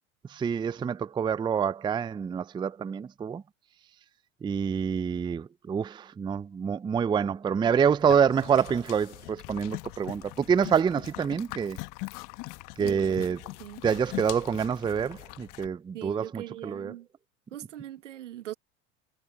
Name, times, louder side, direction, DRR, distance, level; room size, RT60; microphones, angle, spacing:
voice 1, 0.3-3.4 4.4-11.8 12.8-13.4 13.8-16.9, right 7 dB, 15° right, 0.4 m, -27 dB
sound 1, 7.8-15.7, left 25 dB, 55° left, 1.4 m, -41 dB
voice 2, 12.8-13.9 15.9-17.1 17.5-18.5, right 13 dB, 85° right, 1.8 m, -41 dB
hypercardioid pair, 80°, 36 cm